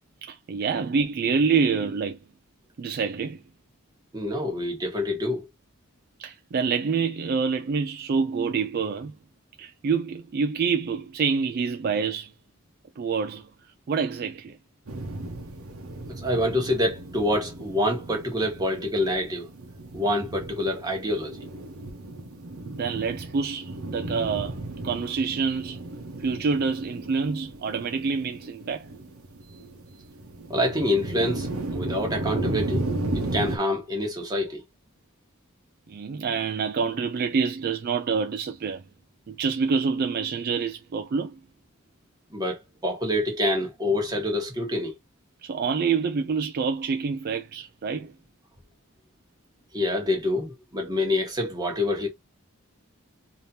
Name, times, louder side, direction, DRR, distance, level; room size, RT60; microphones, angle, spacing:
voice 1, 0.2-2.2 2.8-3.4 6.2-9.1 9.6-12.3 13.0-13.5 13.9-14.6 22.7-25.8 26.2-28.9 35.9-38.8 39.3-41.4 45.4-48.1, right 5 dB, 45° right, 0.3 m, -27 dB
voice 2, 4.1-5.5 16.2-19.5 19.9-21.4 30.5-32.8 33.3-34.6 42.3-44.9 49.7-52.1, left 1 dB, 20° right, 1.4 m, -26 dB
sound 1, 14.9-33.6, right 2 dB, 75° right, 0.9 m, -35 dB
3.3 x 2.8 x 2.7 m
head